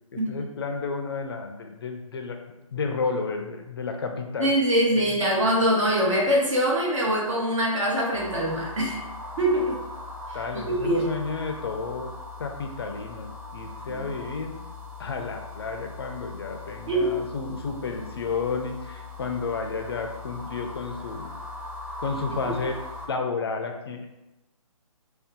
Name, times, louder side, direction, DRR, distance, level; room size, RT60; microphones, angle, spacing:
voice 1, 0.1-2.4 2.7-4.5 5.0-5.2 10.3-12.1 12.4-14.6 15.0-21.3 22.0-22.7 23.1-24.1, left 4 dB, 45° left, 4 dB, 0.4 m, -31 dB
voice 2, 4.4-9.0 9.4-9.8 10.7-11.1 13.9-14.1 16.8-17.1 22.3-22.6, right 1 dB, 60° right, -3 dB, 1.1 m, -23 dB
sound 1, 8.1-23.1, left 3 dB, 10° right, 0.9 m, -40 dB
2.6 x 2.3 x 3.5 m, 0.96 s
hypercardioid pair, 155°, 18 cm